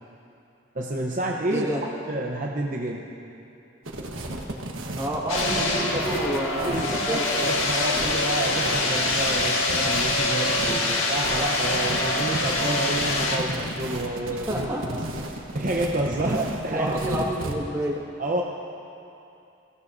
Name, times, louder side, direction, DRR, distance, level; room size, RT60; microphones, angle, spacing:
voice 1, 0.7-1.7 2.1-3.1 6.5-17.3 18.2-18.4, right 1 dB, 40° right, -1 dB, 0.8 m, -29 dB
voice 2, 1.5-1.8 4.9-7.5 14.3-15.0 16.2-18.0, right 1 dB, 15° right, -3 dB, 1.7 m, -29 dB
sound 1, 3.9-17.5, right 1 dB, 80° right, 1.2 m, -34 dB
sound 2, 5.3-13.4, left 2 dB, 80° left, 1.6 m, -25 dB
22.0 x 15.5 x 2.6 m, 2.8 s
head